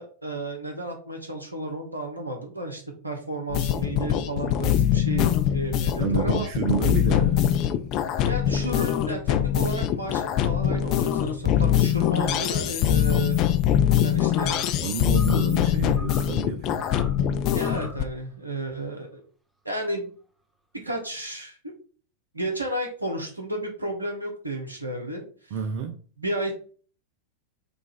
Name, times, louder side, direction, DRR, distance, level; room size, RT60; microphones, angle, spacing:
voice 1, 0.0-6.5 8.3-13.4 14.0-14.6 17.5-19.2 19.6-20.1 20.7-21.6 22.3-25.5 26.2-26.5, right 1 dB, 80° right, 1.0 m, -32 dB
sound 1, 3.5-18.0, left 10 dB, 40° left, 0.4 m, -23 dB
voice 2, 6.0-7.4 14.8-16.9 25.5-26.0, right 7 dB, 45° right, 0.4 m, -29 dB
sound 2, 14.4-14.8 15.1-15.6 16.0-16.4 16.8-17.2 17.6-18.1, equal, 5° right, 0.7 m, -42 dB
5.0 x 2.5 x 3.3 m
figure-of-eight pair, 90°, 0 cm